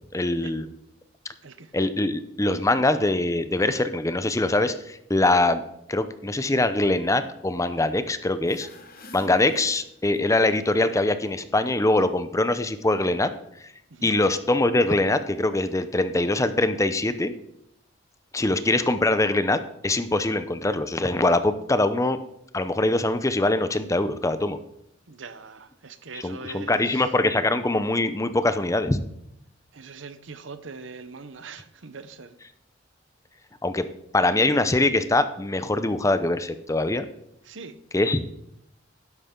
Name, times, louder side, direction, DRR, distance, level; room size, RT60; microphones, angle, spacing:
voice 1, 0.1-0.7 1.7-5.6 5.9-8.7 9.1-13.3 13.6-13.7 14.0-17.3 18.3-22.2 22.5-24.6 26.1-29.0 33.6-33.9 34.1-37.0 37.9-38.2, left 2 dB, 15° left, 0.6 m, -23 dB
voice 2, 1.4-1.7 13.9-14.1 25.1-27.1 29.7-32.4 37.4-37.8, right 4 dB, 75° right, 0.9 m, -42 dB
sound 1, 8.4-10.5, left 1 dB, 50° left, 1.3 m, -48 dB
12.5 x 10.5 x 3.8 m
head